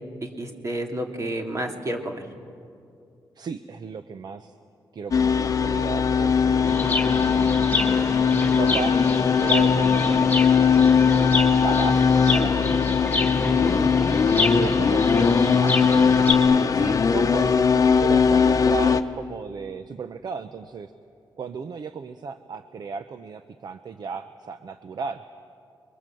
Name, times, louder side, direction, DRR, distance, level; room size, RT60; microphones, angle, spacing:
voice 1, 0.2-2.3 13.4-13.9, right 1 dB, 40° right, 3 dB, 2.8 m, -31 dB
voice 2, 3.4-4.6 4.9-6.7 7.0-7.5 8.2-9.0 9.4-13.0 13.4-14.0 14.5-16.2 16.4-17.7 18.0-20.9 21.4-25.2, right 6 dB, 55° right, 10 dB, 0.8 m, -35 dB
sound 1, 5.1-19.0, left 6 dB, 45° left, 1.0 m, -20 dB
Chirp tweet, 6.6-16.3, left 2 dB, 20° left, 3.2 m, -29 dB
29.5 x 22.5 x 7.7 m, 2.4 s
wide cardioid pair, 110°, 8 cm